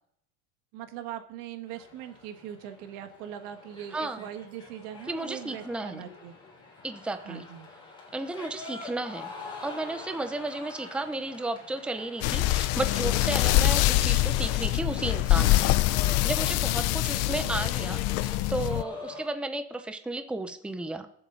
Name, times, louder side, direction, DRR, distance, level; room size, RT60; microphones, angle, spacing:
voice 1, 0.7-6.3 7.2-7.7 17.4-17.6, right 10 dB, 70° right, 7 dB, 1.6 m, -41 dB
sound 1, 1.7-19.3, left 3 dB, 15° left, 3.8 m, -45 dB
voice 2, 3.9-4.3 5.1-6.1 6.8-7.4 8.1-9.3 9.6-15.8 16.0-21.1, right 2 dB, 5° right, 8 dB, 0.7 m, -33 dB
sound 2, 12.2-18.8, left 16 dB, 55° left, 0.6 m, -24 dB
22.0 x 7.7 x 4.0 m, 0.74 s
cardioid pair, 145°, 30 cm